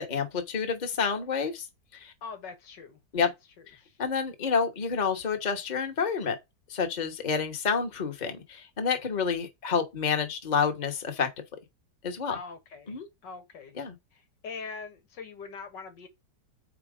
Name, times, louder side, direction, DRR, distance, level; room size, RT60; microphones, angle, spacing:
voice 1, 0.1-1.7 1.9-2.1 3.1-3.3 4.0-6.4 6.7-11.3 12.0-12.4 12.9-13.1 13.7-13.9, left 6 dB, 30° left, 1.1 m, -29 dB
voice 2, 2.2-4.0 12.3-13.8 14.1-16.1, left 5 dB, 90° left, 2.0 m, -43 dB
5.0 x 4.5 x 4.9 m
omnidirectional pair, 1.9 m